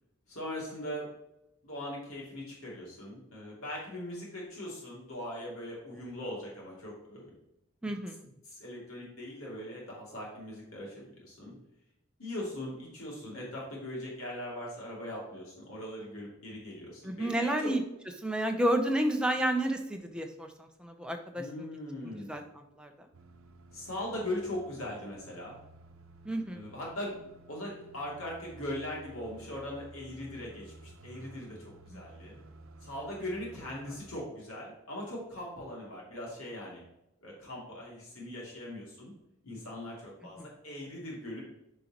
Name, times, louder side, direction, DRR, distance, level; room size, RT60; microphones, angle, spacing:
voice 1, 0.3-1.1 1.6-7.4 8.4-11.5 12.2-17.7 21.4-22.3 23.7-25.6 26.5-27.2 27.5-32.4 32.8-36.8 37.2-39.1 39.4-41.4, left 1 dB, 75° left, -4 dB, 2.8 m, -40 dB
voice 2, 7.8-8.3 17.0-17.8 18.2-21.7 22.0-22.9 26.2-26.6 31.9-32.0 40.4-40.5, right 1 dB, 5° right, 4 dB, 0.7 m, -31 dB
sound 1, 23.1-34.1, right 2 dB, 65° right, 0.8 m, -54 dB
9.0 x 5.2 x 3.0 m, 0.87 s
head